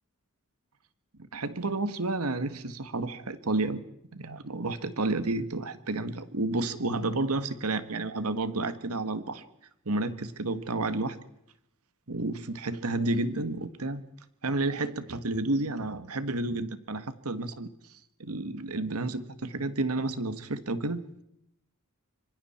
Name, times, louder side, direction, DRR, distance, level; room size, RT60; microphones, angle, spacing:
voice 1, 1.3-3.8 4.1-9.4 9.8-11.2 12.1-14.0 14.4-17.7 18.2-21.2, right 2 dB, 85° right, 12 dB, 1.5 m, -31 dB
26.0 x 23.5 x 4.4 m, 0.78 s
head